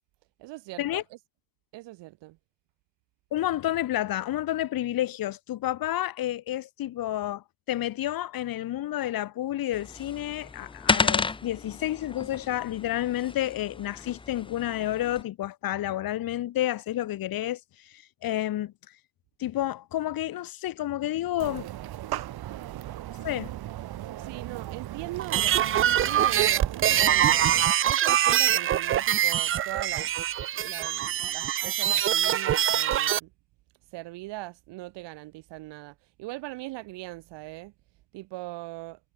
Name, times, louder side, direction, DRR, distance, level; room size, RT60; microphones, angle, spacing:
voice 1, 0.4-1.2 1.7-2.4 24.2-27.4 27.8-30.1 30.5-33.3 33.9-37.7 38.1-39.0, right 19 dB, 85° right, 6.7 m, -40 dB
voice 2, 3.3-18.7 19.4-21.7 23.2-23.5, left 13 dB, 55° left, 2.0 m, -30 dB
sound 1, 9.7-15.2, left 4 dB, 10° left, 0.6 m, -32 dB
sound 2, 21.4-27.7, right 13 dB, 60° right, 4.2 m, -37 dB
sound 3, 25.2-33.2, right 11 dB, 30° right, 0.5 m, -24 dB
cardioid pair, 130°, 41 cm